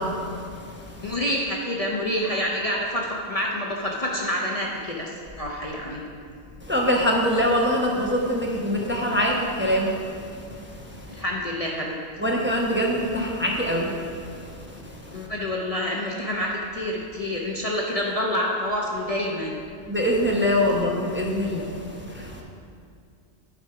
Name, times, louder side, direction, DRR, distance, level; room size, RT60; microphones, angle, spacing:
voice 1, 0.0-1.2 6.6-11.2 12.2-15.3 19.9-22.4, equal, 10° right, -2 dB, 0.9 m, -25 dB
voice 2, 1.0-5.1 5.4-6.0 11.1-12.0 15.1-19.6, left 1 dB, 35° left, -2 dB, 0.8 m, -27 dB
12.0 x 4.9 x 5.7 m, 2.3 s
omnidirectional pair, 1.2 m